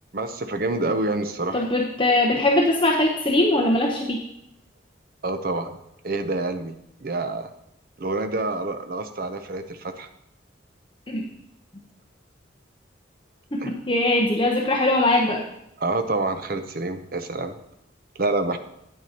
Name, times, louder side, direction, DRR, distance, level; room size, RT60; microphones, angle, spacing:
voice 1, 0.1-1.7 5.2-5.8 6.0-6.7 7.0-7.5 8.0-10.1 13.6-13.7 15.8-17.5 18.2-18.6, right 2 dB, 50° right, 8 dB, 0.7 m, -27 dB
voice 2, 1.5-4.2 11.1-11.2 13.5-15.4, left 1 dB, 25° left, 0 dB, 0.8 m, -21 dB
9.3 x 9.1 x 2.9 m, 0.82 s
head